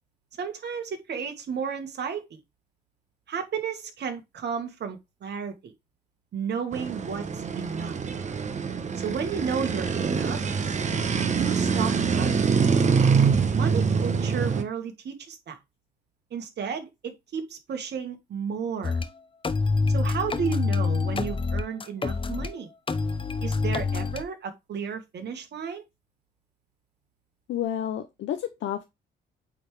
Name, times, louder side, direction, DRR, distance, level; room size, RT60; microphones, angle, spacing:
voice 1, 0.4-2.4 3.3-5.7 6.3-8.0 9.0-10.4 11.3-12.5 13.5-15.6 16.3-19.0 19.9-22.7 23.4-25.8, right 6 dB, 60° right, 1.7 m, -33 dB
sound 1, 6.7-14.6, right 5 dB, 35° right, 1.0 m, -25 dB
sound 2, 18.8-19.1 19.4-22.5 22.9-24.2, left 4 dB, 25° left, 0.7 m, -26 dB
voice 2, 27.5-28.8, left 10 dB, 75° left, 0.8 m, -30 dB
8.4 x 3.6 x 3.3 m
cardioid pair, 90°, 20 cm